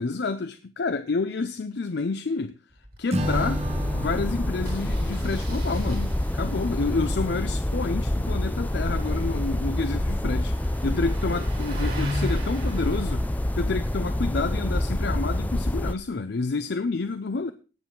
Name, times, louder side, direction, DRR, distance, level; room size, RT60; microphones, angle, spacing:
voice 1, 0.0-2.5 3.0-3.6 3.9-17.5, left 4 dB, 60° left, 0.5 m, -29 dB
Engine starting, 2.7-3.0 3.2-3.3 3.6-3.7 4.6-15.7, equal, 50° right, 3.1 m, -41 dB
Acoustic guitar / Strum, 3.1-6.4, right 1 dB, 35° right, 1.0 m, -33 dB
sound 1, 3.2-16.0, left 1 dB, 10° left, 0.4 m, -27 dB
17.5 x 6.3 x 3.8 m
head